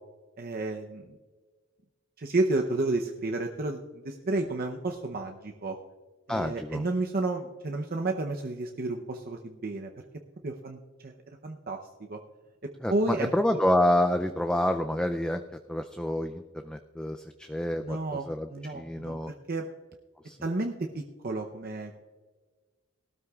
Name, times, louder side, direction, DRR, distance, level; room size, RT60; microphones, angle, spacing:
voice 1, 0.4-1.2 2.2-5.8 6.3-9.9 10.4-11.1 11.4-11.8 12.1-12.2 12.6-13.3 17.8-19.7 20.4-22.0, right 2 dB, 50° right, 2 dB, 0.7 m, -31 dB
voice 2, 6.3-6.8 12.8-15.4 15.7-19.3 20.2-20.4, left 1 dB, 5° left, 6 dB, 0.3 m, -28 dB
19.0 x 13.0 x 2.4 m, 1.4 s
head